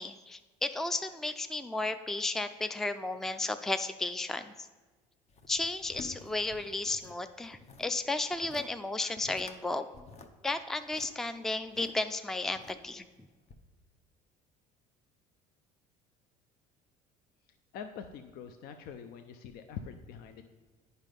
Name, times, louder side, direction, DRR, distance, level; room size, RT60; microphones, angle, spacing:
voice 1, 0.0-4.7 5.5-9.9 10.4-13.0, left 2 dB, ahead, 10 dB, 0.4 m, -33 dB
sound 1, 5.3-7.2 7.4-7.9 8.3-8.7 9.0-9.6 9.9-11.9 12.5-13.1 13.5-13.6, left 3 dB, 40° left, 0.9 m, -50 dB
voice 2, 17.7-20.4, left 7 dB, 60° left, 8 dB, 0.6 m, -44 dB
8.9 x 5.4 x 5.2 m, 1.3 s
supercardioid pair, 80°, 17 cm